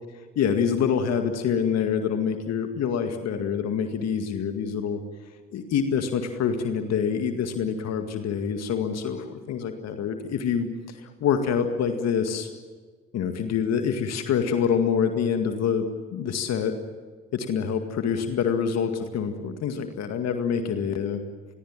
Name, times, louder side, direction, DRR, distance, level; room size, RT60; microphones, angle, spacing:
voice 1, 0.4-5.0 5.5-10.7 11.0-12.5 13.1-16.7 17.3-21.2, left 7 dB, 60° left, 7 dB, 2.1 m, -26 dB
27.0 x 22.0 x 7.5 m, 1.5 s
hypercardioid pair, 45°, 29 cm